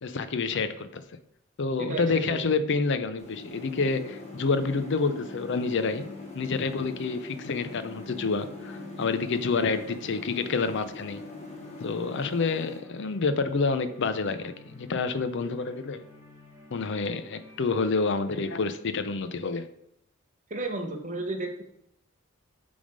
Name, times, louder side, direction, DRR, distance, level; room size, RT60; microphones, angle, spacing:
voice 1, 0.0-1.0 1.6-6.1 6.3-11.2 11.8-16.0 16.7-19.7, left 4 dB, 60° left, 11 dB, 0.6 m, -28 dB
voice 2, 1.8-2.5 20.5-21.7, right 2 dB, 35° right, 4 dB, 1.0 m, -33 dB
sound 1, 3.2-12.8, left 3 dB, 30° left, 1.4 m, -43 dB
sound 2, 3.5-18.5, left 1 dB, 15° right, 1.5 m, -50 dB
8.5 x 3.5 x 5.2 m, 0.75 s
head